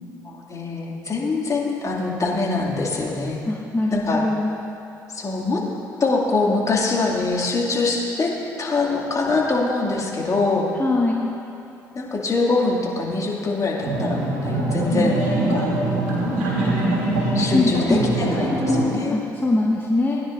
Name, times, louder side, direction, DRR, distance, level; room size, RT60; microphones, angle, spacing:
voice 1, 0.2-3.4 3.9-4.3 5.1-5.6 6.0-8.3 8.6-10.7 11.9-15.7 16.6-16.7 17.3-19.2, left 3 dB, 40° left, -3 dB, 2.3 m, -23 dB
voice 2, 3.5-4.6 10.8-11.3 17.5-18.1 19.1-20.2, left 2 dB, 20° left, -3 dB, 1.3 m, -22 dB
sound 1, 13.8-18.8, right 1 dB, 80° right, 2.7 m, -22 dB
19.0 x 10.0 x 2.6 m, 2.7 s
hypercardioid pair, 50°, 9 cm